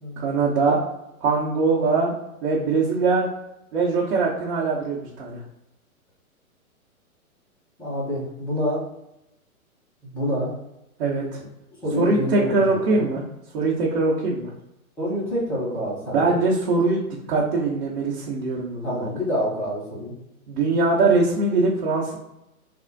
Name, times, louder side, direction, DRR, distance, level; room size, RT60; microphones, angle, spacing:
voice 1, 0.2-0.8 1.2-2.1 2.4-3.3 3.7-5.4 11.0-11.5 12.0-13.2 13.5-14.5 16.1-17.0 17.3-19.1 20.5-22.2, right 3 dB, 50° right, -6 dB, 1.1 m, -22 dB
voice 2, 7.8-8.8 10.1-10.5 11.8-13.0 15.0-16.4 18.8-20.1, equal, 5° left, -8 dB, 0.4 m, -27 dB
3.4 x 2.3 x 3.9 m, 0.88 s
hypercardioid pair, 130°, 44 cm